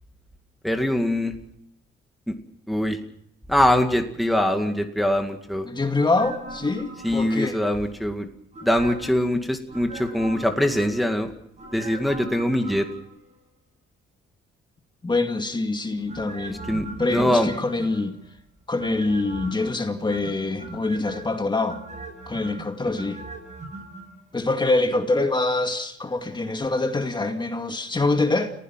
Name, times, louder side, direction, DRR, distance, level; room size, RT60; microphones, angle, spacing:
voice 1, 0.6-1.4 2.3-2.4 2.7-3.0 3.5-5.7 7.0-8.3 8.6-11.3 11.7-12.9 16.5-17.5, left 1 dB, ahead, 2.2 m, -23 dB
voice 2, 5.7-7.6 15.0-16.7 17.0-18.2 18.7-21.8 22.3-23.2 24.3-28.5, left 2 dB, 20° left, 2.2 m, -25 dB
sound 1, 5.9-7.8 8.5-9.2 9.7-11.1 11.6-13.3 16.1-18.2 18.8-19.7 20.1-21.2 21.7-24.0 24.3-24.4, right 2 dB, 35° right, 8.0 m, -39 dB
29.5 x 16.0 x 5.8 m
cardioid pair, 90°, 20 cm